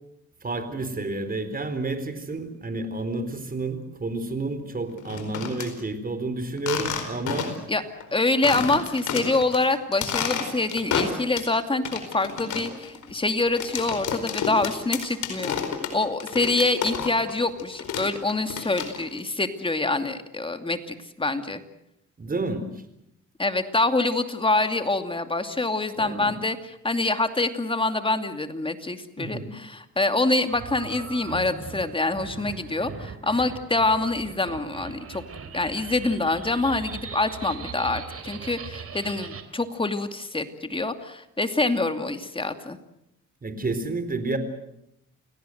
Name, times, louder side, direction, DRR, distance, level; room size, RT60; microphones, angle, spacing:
voice 1, 0.4-7.6 22.2-22.7 26.0-26.3 29.2-29.5 43.4-44.4, right 2 dB, 30° right, 10 dB, 4.3 m, -30 dB
cutting up a soda bottle, 5.0-5.7 6.6-7.7 8.0-8.1 8.4-9.6 9.9-11.5 11.9-17.3 17.6-19.2, left 7 dB, 75° left, 4.7 m, -30 dB
voice 2, 8.1-15.6 15.9-21.6 23.4-35.2 35.5-42.8, left 2 dB, 15° left, 8 dB, 2.6 m, -26 dB
sound 1, 30.5-39.4, right 6 dB, 50° right, 3.8 m, -40 dB
29.0 x 18.5 x 8.0 m, 0.80 s
cardioid pair, 90°, 30 cm